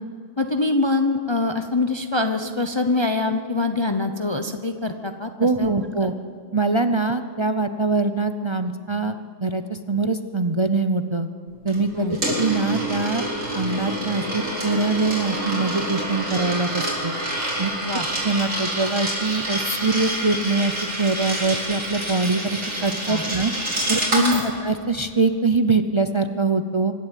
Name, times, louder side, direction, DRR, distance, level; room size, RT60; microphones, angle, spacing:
voice 1, 0.4-5.7 6.0-6.1 11.9-12.2 17.8-18.1 23.1-23.2 24.2-24.4, left 3 dB, 25° left, 7 dB, 0.8 m, -24 dB
voice 2, 5.4-6.1 6.5-11.3 11.6-13.2 13.5-17.2 17.6-17.7 18.2-23.5 23.9-24.2 24.6-26.9, right 3 dB, 30° right, 9 dB, 0.6 m, -23 dB
Coin (dropping), 11.7-24.4, right 1 dB, 85° right, 5.3 m, -27 dB
25.0 x 11.5 x 9.1 m, 2.2 s
omnidirectional pair, 1.3 m